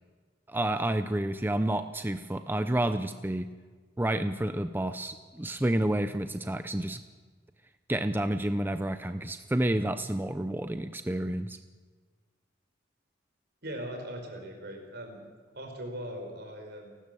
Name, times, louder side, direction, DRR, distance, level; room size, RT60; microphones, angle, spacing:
voice 1, 0.5-3.5 4.0-7.0 7.9-11.6, right 1 dB, 10° right, 10 dB, 0.6 m, -29 dB
voice 2, 13.6-15.2 15.5-16.9, equal, 60° right, 3 dB, 5.0 m, -40 dB
30.0 x 12.5 x 7.7 m, 1.4 s
head